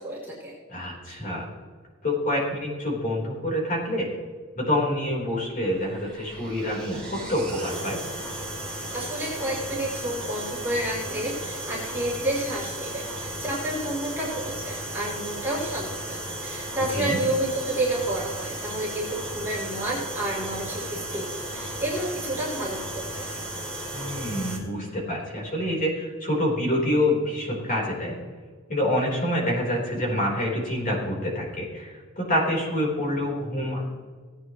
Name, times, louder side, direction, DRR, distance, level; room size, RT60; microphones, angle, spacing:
voice 1, 0.0-0.5 8.9-23.3, right 1 dB, 10° right, -7 dB, 3.4 m, -30 dB
voice 2, 0.7-1.4 2.0-4.1 4.6-8.0 16.9-17.2 23.9-28.1 28.7-33.8, left 1 dB, 40° left, -3 dB, 4.0 m, -27 dB
sound 1, 5.6-24.6, right 1 dB, 5° left, 2.8 m, -35 dB
18.0 x 9.0 x 3.1 m, 1.5 s
head